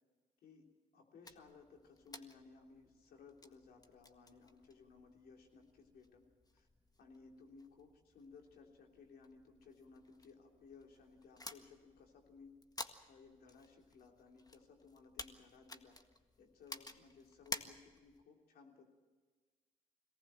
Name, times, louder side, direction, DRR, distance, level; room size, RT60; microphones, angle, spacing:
voice 1, 0.9-6.3 6.5-6.7 7.0-12.6 13.1-16.0 16.4-18.9, left 4 dB, 75° left, 1 dB, 3.3 m, -60 dB
sound 1, 1.2-18.2, left 2 dB, 25° left, 1.7 m, -53 dB
22.5 x 18.0 x 7.6 m, 1.4 s
hypercardioid pair, 45°, 16 cm